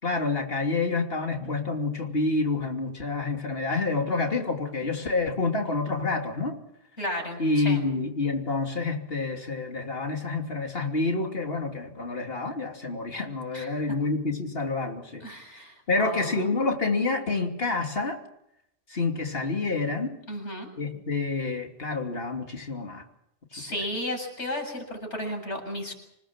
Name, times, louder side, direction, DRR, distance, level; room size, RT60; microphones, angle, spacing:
voice 1, 0.0-6.6 7.4-15.2 15.9-18.2 18.9-20.2 20.8-23.0 23.6-23.7, left 3 dB, 55° left, 3 dB, 3.1 m, -28 dB
voice 2, 7.0-7.8 13.5-14.0 15.2-16.4 20.3-20.7 23.5-25.9, left 1 dB, 80° left, 3 dB, 7.9 m, -34 dB
27.0 x 19.0 x 7.5 m, 0.79 s
omnidirectional pair, 1.2 m